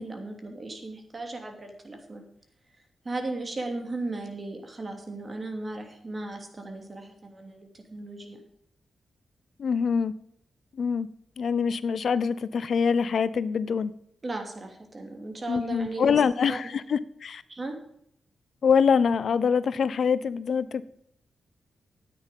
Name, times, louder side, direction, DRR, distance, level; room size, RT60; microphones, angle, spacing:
voice 1, 0.0-2.2 3.0-8.4 14.2-16.2 16.5-16.6 17.5-17.8, right 2 dB, 40° right, 4 dB, 2.9 m, -36 dB
voice 2, 9.6-10.1 10.7-11.1 11.4-13.9 15.5-17.4 18.6-20.8, left 6 dB, 65° left, 16 dB, 0.5 m, -24 dB
9.6 x 9.3 x 5.3 m, 0.71 s
supercardioid pair, 40°, 0 cm